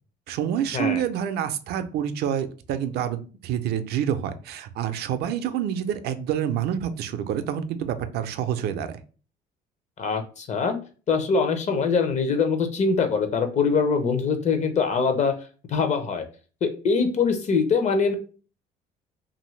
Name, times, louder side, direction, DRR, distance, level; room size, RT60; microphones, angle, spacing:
voice 1, 0.3-9.0, right 9 dB, 70° right, 10 dB, 0.4 m, -27 dB
voice 2, 10.0-10.8 11.1-15.3 15.7-16.3 16.6-18.1, left 5 dB, 45° left, 7 dB, 0.6 m, -23 dB
2.7 x 2.5 x 3.1 m, 0.37 s
cardioid pair, 110°, 17 cm